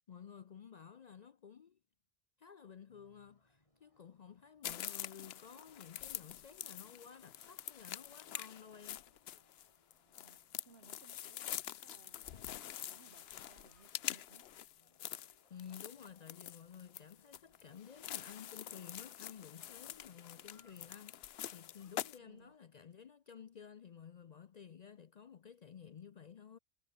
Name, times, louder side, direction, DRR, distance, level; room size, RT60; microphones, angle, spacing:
voice 1, 0.1-1.8 2.4-9.1 15.5-26.6, left 7 dB, 50° left, 0.6 m, -54 dB
sound 1, 2.9-22.6, left 1 dB, 30° left, 5.3 m, -75 dB
sound 2, 4.6-22.2, left 11 dB, 70° left, 0.9 m, -46 dB
voice 2, 4.6-5.0 10.1-10.4 10.7-14.5 20.4-20.5 22.2-22.6, right 4 dB, 70° right, 2.1 m, -64 dB
omnidirectional pair, 1.1 m